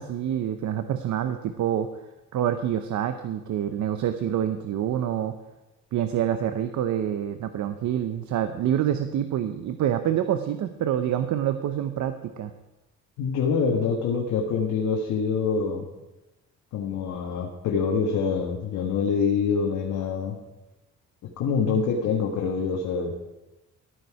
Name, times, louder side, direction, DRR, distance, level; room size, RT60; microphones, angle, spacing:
voice 1, 0.0-1.9 2.3-5.3 5.9-12.5, right 10 dB, 70° right, 9 dB, 0.8 m, -27 dB
voice 2, 13.2-15.9 16.7-20.4 21.2-23.1, left 5 dB, 85° left, -1 dB, 1.6 m, -25 dB
13.5 x 9.5 x 4.7 m, 1.0 s
cardioid pair, 90°, 30 cm